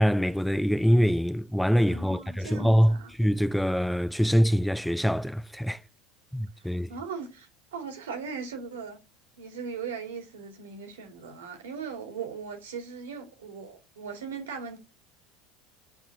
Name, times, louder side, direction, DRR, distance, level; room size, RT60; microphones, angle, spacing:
voice 1, 0.0-5.8 6.3-6.9, equal, ahead, 0.5 m, -24 dB
voice 2, 1.9-3.1 6.9-9.0 9.4-14.8, right 6 dB, 85° right, 2.2 m, -38 dB
7.2 x 5.7 x 6.8 m
hypercardioid pair, 85°, 0 cm